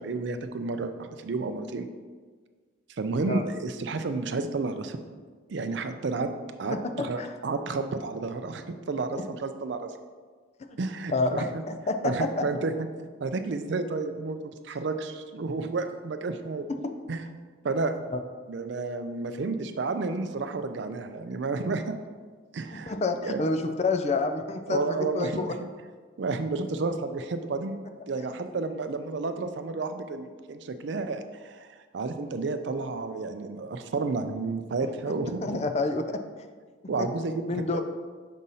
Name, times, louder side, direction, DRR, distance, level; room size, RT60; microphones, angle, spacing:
voice 1, 0.0-1.9 3.0-5.0 5.5-6.3 6.6-9.9 10.8-11.5 12.0-12.7 13.2-16.7 17.1-17.2 17.6-17.9 18.5-22.0 22.5-22.9 23.2-23.4 24.7-25.7 26.2-27.8 28.1-35.6 36.9-37.8, right 3 dB, 60° right, 8 dB, 0.4 m, -31 dB
voice 2, 6.7-7.3 10.7-10.8 11.1-12.5 18.1-18.2 22.7-25.5 28.2-28.4 35.4-36.2 37.0-37.1 37.5-37.8, left 3 dB, 35° left, 7 dB, 0.3 m, -29 dB
6.2 x 2.7 x 5.5 m, 1.5 s
head